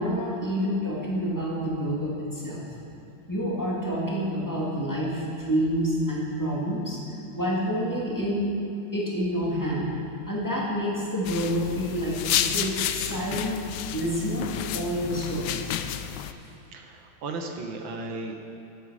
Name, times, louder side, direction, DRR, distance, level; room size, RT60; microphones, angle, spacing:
voice 1, 0.0-2.6 3.3-7.0 7.4-8.6 8.9-9.9 10.3-13.6 13.9-15.8, equal, 10° left, -6 dB, 2.1 m, -28 dB
sound 1, 11.2-16.3, left 10 dB, 75° left, 1.0 m, -31 dB
voice 2, 16.7-18.5, right 3 dB, 70° right, 3 dB, 1.8 m, -35 dB
13.0 x 8.3 x 4.9 m, 2.8 s
omnidirectional pair, 2.2 m